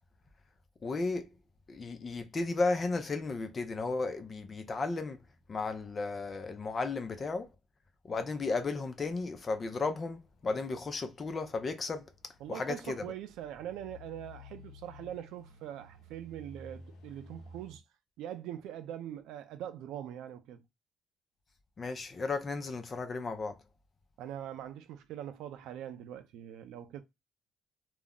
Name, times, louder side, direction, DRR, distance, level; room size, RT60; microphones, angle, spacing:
voice 1, 0.8-1.3 1.7-5.2 5.5-7.5 8.0-12.1 12.5-13.0 21.8-23.6, left 3 dB, 30° left, 0.4 m, -34 dB
sound 1, 9.2-9.7 10.0-17.8, left 2 dB, 80° left, 0.6 m, -53 dB
voice 2, 12.4-17.8 18.2-20.6 24.2-27.0, right 11 dB, 80° right, 0.4 m, -42 dB
2.4 x 2.0 x 3.5 m
cardioid pair, 140°, 0 cm